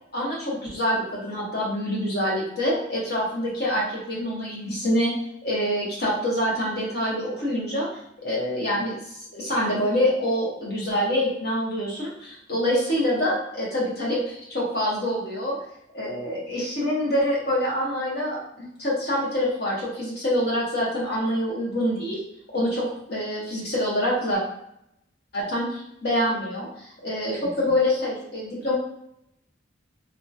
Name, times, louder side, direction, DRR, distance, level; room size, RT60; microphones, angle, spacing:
voice 1, 0.1-5.1 5.4-7.9 8.2-9.0 9.3-15.6 15.9-22.2 22.5-24.4 25.3-25.6 26.0-26.7 27.0-28.7, equal, 55° left, -5 dB, 1.0 m, -26 dB
2.8 x 2.3 x 2.7 m, 0.76 s
head